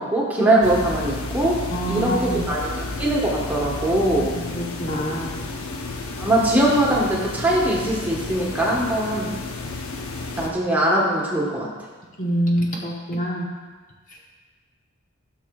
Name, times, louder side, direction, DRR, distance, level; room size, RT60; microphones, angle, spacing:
voice 1, 0.0-4.3 6.2-9.3 10.4-11.7, right 1 dB, 10° right, -5 dB, 1.2 m, -21 dB
sound 1, 0.6-10.5, left 3 dB, 75° left, 0.8 m, -32 dB
voice 2, 1.7-2.4 4.3-5.4 12.2-13.5, equal, 35° left, -2 dB, 0.9 m, -26 dB
13.0 x 6.3 x 2.3 m, 1.4 s
head